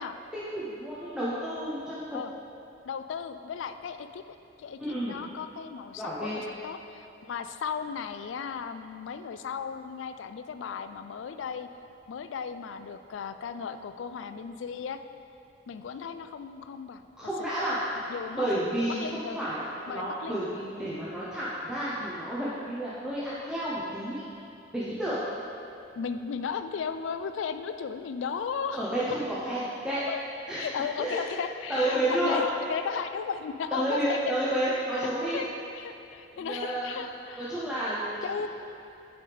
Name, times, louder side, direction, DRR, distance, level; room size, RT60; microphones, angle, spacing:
voice 1, 0.3-2.0 4.8-5.2 5.9-6.4 17.2-17.8 18.3-19.6 19.9-24.2 24.7-25.2 28.7-30.0 30.5-30.7 31.0-31.2 31.7-32.4 33.7-35.4 36.4-37.0 37.4-38.4, right 1 dB, 5° right, -10 dB, 0.6 m, -31 dB
voice 2, 2.8-4.2 4.6-11.7 12.1-15.0 15.7-17.0 18.1-18.5 18.9-19.4 19.9-20.4 26.0-28.8 30.1-30.2 30.6-34.2 34.9-35.5 35.7-37.7 38.2-38.5, left 6 dB, 80° left, 10 dB, 0.3 m, -35 dB
8.5 x 5.0 x 3.4 m, 2.7 s
head